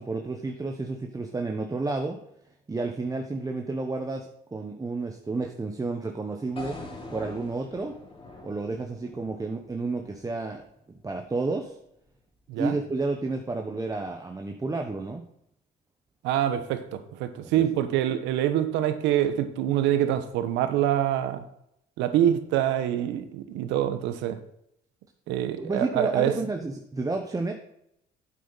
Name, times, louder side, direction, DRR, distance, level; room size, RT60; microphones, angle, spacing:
voice 1, 0.0-2.2 2.7-6.8 7.1-8.0 8.4-11.7 12.6-15.3 17.4-17.6 25.4-27.5, right 3 dB, 20° right, 3 dB, 1.1 m, -31 dB
sound 1, 6.6-10.7, left 1 dB, 30° left, 3.4 m, -44 dB
voice 2, 16.2-21.4 22.0-24.4 25.3-26.3, right 11 dB, 80° right, 10 dB, 1.1 m, -25 dB
8.6 x 7.7 x 4.1 m, 0.77 s
supercardioid pair, 90°, 18 cm